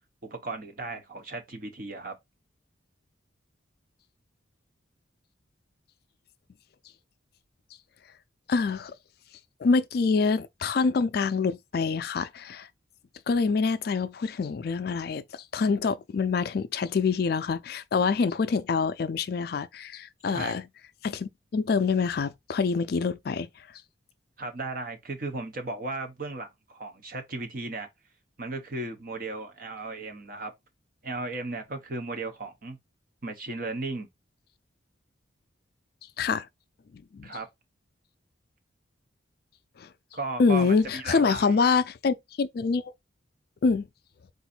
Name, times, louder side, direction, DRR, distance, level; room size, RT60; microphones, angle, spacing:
voice 1, 0.2-2.1 20.3-20.5 24.4-27.9 28.4-30.5 31.0-32.8 33.2-34.1 37.2-37.5 40.1-41.5, right 3 dB, 45° right, 0.9 m, -35 dB
voice 2, 8.5-8.9 9.6-12.7 13.3-20.6 21.0-23.5 36.2-36.5 36.9-37.3 39.8-39.9 40.4-42.9 43.6-43.9, left 4 dB, 50° left, 0.3 m, -26 dB
3.9 x 2.6 x 4.2 m
head